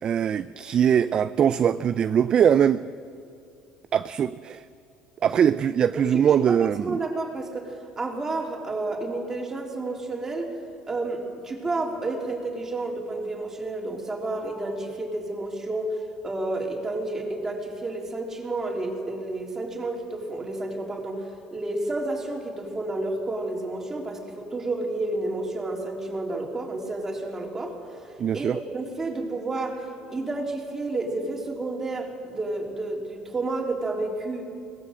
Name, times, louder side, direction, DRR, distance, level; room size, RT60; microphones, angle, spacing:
voice 1, 0.0-2.8 3.9-4.6 5.2-7.0 28.2-28.6, right 8 dB, 40° right, 0.4 m, -21 dB
voice 2, 5.9-10.5 10.9-16.0 16.2-27.8 28.3-29.8 30.1-34.5, right 2 dB, 20° right, 3.5 m, -30 dB
22.0 x 19.0 x 7.7 m
cardioid pair, 130°, 2 cm